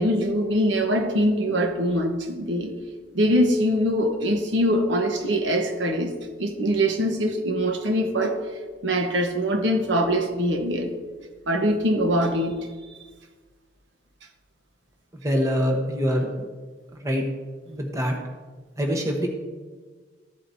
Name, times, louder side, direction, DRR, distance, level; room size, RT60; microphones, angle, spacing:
voice 1, 0.0-2.7 3.1-6.1 6.4-8.4 8.8-10.9 11.5-12.6, equal, 70° right, 4 dB, 1.1 m, -23 dB
voice 2, 15.2-16.3 16.9-17.2 17.7-18.2 18.8-19.3, equal, 15° right, 1 dB, 1.0 m, -24 dB
14.5 x 7.6 x 2.7 m, 1.4 s
head